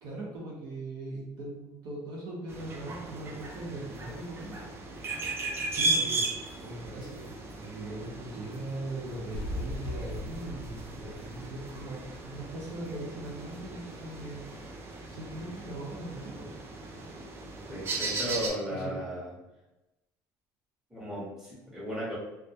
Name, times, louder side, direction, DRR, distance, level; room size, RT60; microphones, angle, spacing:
voice 1, 0.0-4.6 5.7-6.3 6.6-14.4 15.1-16.5 18.7-18.9, right 2 dB, 55° right, -4 dB, 0.7 m, -40 dB
sound 1, 2.5-18.5, right 2 dB, 30° right, 0.4 m, -37 dB
sound 2, 9.3-12.3, left 1 dB, 75° left, 0.4 m, -38 dB
voice 2, 17.7-19.3 20.9-22.2, equal, 5° right, -8 dB, 0.8 m, -35 dB
2.2 x 2.1 x 2.7 m, 0.99 s
cardioid pair, 155°, 8 cm